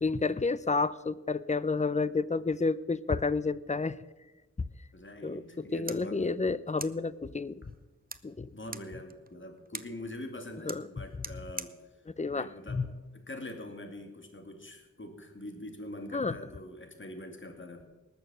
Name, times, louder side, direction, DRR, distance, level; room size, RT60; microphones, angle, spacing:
voice 1, 0.0-4.0 5.2-5.4 5.7-7.7 8.2-8.5 10.7-10.8 12.2-12.9 16.1-16.3, left 4 dB, 25° left, 18 dB, 0.6 m, -30 dB
voice 2, 4.9-6.3 8.5-11.7 12.3-12.8 13.1-17.8, left 1 dB, 40° left, 5 dB, 2.4 m, -44 dB
sound 1, 5.5-13.5, right 4 dB, 30° right, 0.8 m, -48 dB
19.5 x 7.0 x 6.3 m, 1.2 s
cardioid pair, 55°, 30 cm